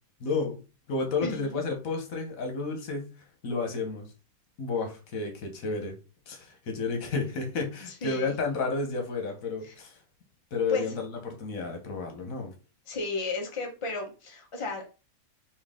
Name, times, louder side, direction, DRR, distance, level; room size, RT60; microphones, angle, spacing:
voice 1, 0.2-0.6 0.9-3.1 3.4-4.1 4.6-5.9 6.3-10.0 10.5-12.5, left 4 dB, 85° left, 4 dB, 1.5 m, -31 dB
voice 2, 1.2-1.6 7.9-8.3 9.6-9.7 10.7-10.8 12.9-14.9, left 3 dB, 25° left, 0 dB, 1.0 m, -34 dB
4.5 x 2.8 x 3.6 m, 0.32 s
omnidirectional pair, 1.4 m